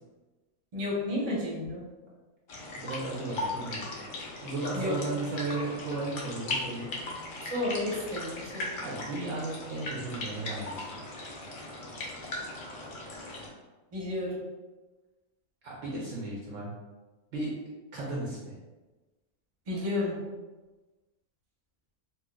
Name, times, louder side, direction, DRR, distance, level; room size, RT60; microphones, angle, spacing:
voice 1, 0.7-1.8 4.7-5.0 7.5-8.7 13.9-14.4 19.7-20.2, left 2 dB, 30° right, -6 dB, 0.8 m, -31 dB
sound 1, 2.5-13.5, left 2 dB, 60° left, 0.5 m, -38 dB
voice 2, 2.7-3.8 4.4-6.9 8.8-11.1 15.6-16.7 17.3-17.5 17.9-18.5, right 2 dB, 65° right, -4 dB, 0.9 m, -35 dB
4.3 x 2.2 x 2.2 m, 1.2 s
omnidirectional pair, 1.6 m